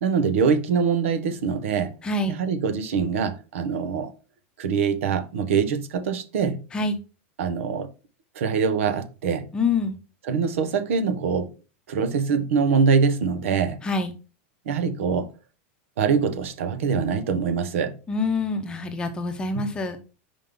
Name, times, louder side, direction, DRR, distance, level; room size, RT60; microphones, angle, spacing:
voice 1, 0.0-1.9 2.3-4.1 4.6-6.6 7.4-7.9 8.3-9.4 10.3-11.5 11.9-13.8 14.7-15.3 16.0-18.0 19.6-19.7, right 6 dB, 80° right, 1.0 m, -24 dB
voice 2, 2.0-2.4 6.7-7.0 9.5-10.0 13.8-14.1 18.1-20.0, left 3 dB, 10° left, 0.7 m, -26 dB
5.4 x 5.1 x 3.7 m
supercardioid pair, 165°, 7 cm